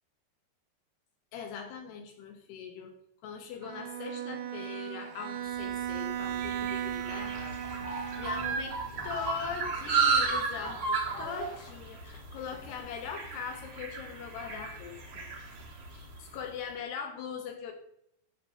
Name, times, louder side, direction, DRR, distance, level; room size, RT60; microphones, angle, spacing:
voice 1, 1.3-2.9 3.2-7.6 7.9-8.8 9.0-15.3 15.9-17.7, left 6 dB, 80° left, 4 dB, 2.9 m, -41 dB
Bowed string instrument, 3.6-8.9, right 10 dB, 70° right, 2.5 m, -36 dB
sound 1, 5.7-16.3, right 5 dB, 50° right, 1.9 m, -34 dB
sound 2, 7.2-11.7 12.1-12.7, left 3 dB, 40° left, 3.1 m, -51 dB
11.0 x 3.8 x 6.6 m, 0.74 s
omnidirectional pair, 5.0 m